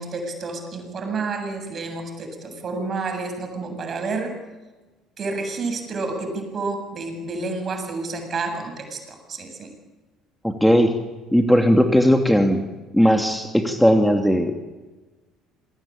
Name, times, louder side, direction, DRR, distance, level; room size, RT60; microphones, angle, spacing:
voice 1, 0.0-4.3 5.2-9.7, right 3 dB, 40° right, 6 dB, 7.8 m, -29 dB
voice 2, 10.4-10.9 11.3-12.6 12.9-14.5, equal, ahead, 4 dB, 2.9 m, -17 dB
28.0 x 23.5 x 8.8 m, 1.2 s
figure-of-eight pair, 55°, 0 cm